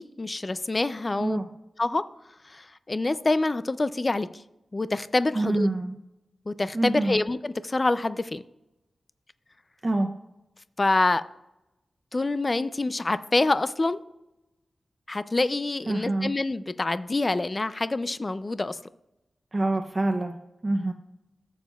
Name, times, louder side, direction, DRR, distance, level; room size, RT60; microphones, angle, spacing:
voice 1, 0.0-1.4 1.8-2.0 2.5-4.3 4.7-5.7 6.5-8.4 10.8-11.2 12.1-14.0 15.1-18.8, left 2 dB, 30° left, 14 dB, 0.3 m, -26 dB
voice 2, 1.2-1.5 5.3-6.0 6.7-7.2 9.8-10.1 15.9-16.3 19.5-20.4 20.6-20.9, right 2 dB, 25° right, 4 dB, 0.5 m, -26 dB
14.5 x 7.1 x 2.3 m, 0.93 s
wide cardioid pair, 125°, 0 cm